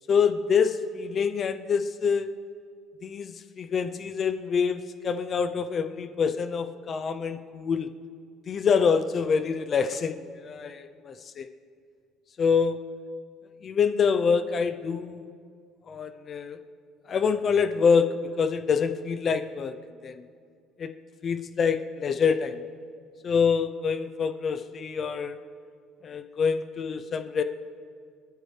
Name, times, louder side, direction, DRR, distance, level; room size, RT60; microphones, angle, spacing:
voice 1, 0.1-2.3 3.0-7.9 8.5-11.5 12.4-12.8 13.6-15.2 15.9-16.6 17.1-19.8 20.0-20.2 20.8-20.9 21.2-22.6 23.2-25.4 26.0-27.4, left 6 dB, 30° left, 9 dB, 0.5 m, -26 dB
29.5 x 11.0 x 3.3 m, 2.2 s
cardioid pair, 160°, 0 cm